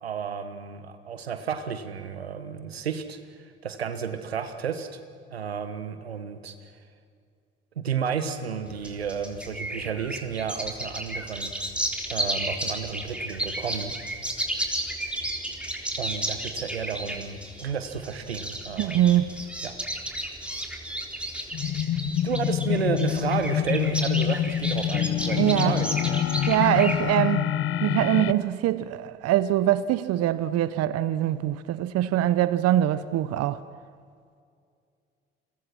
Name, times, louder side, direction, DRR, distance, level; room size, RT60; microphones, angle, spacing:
voice 1, 0.0-5.0 5.3-6.7 7.8-11.5 12.1-14.0 16.0-19.2 19.6-19.7 22.0-26.2, right 6 dB, 90° right, 1.3 m, -32 dB
sound 1, 8.7-27.1, right 1 dB, 5° right, 3.9 m, -33 dB
voice 2, 18.8-19.3 25.4-25.8 26.5-27.5 27.8-33.6, right 13 dB, 55° right, 0.9 m, -23 dB
Out Of Phase, 21.5-28.3, left 11 dB, 45° left, 0.8 m, -26 dB
30.0 x 22.5 x 6.1 m
hypercardioid pair, 55°, 30 cm